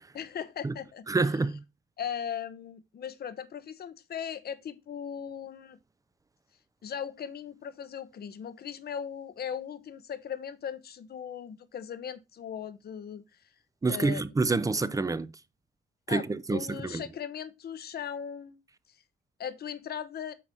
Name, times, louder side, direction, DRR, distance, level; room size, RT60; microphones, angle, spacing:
voice 1, 0.1-1.1 2.0-5.8 6.8-13.2 13.9-14.2 16.1-18.6 19.4-20.3, left 8 dB, 55° left, 0.9 m, -38 dB
voice 2, 1.1-1.6 13.8-15.3 16.1-17.0, right 3 dB, 15° right, 0.5 m, -27 dB
8.6 x 3.1 x 5.3 m
cardioid pair, 90°, 20 cm